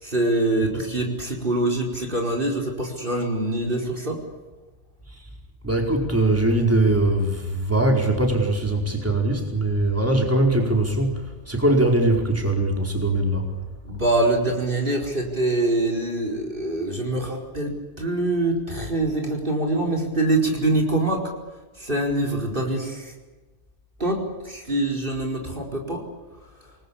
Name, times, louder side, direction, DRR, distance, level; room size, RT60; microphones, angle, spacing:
voice 1, 0.0-4.2 13.8-21.2 21.8-23.1 24.0-26.0, right 2 dB, 50° right, 2 dB, 5.1 m, -24 dB
voice 2, 5.6-13.5, right 2 dB, 10° right, 1 dB, 4.7 m, -21 dB
28.5 x 21.0 x 8.6 m, 1.2 s
omnidirectional pair, 1.2 m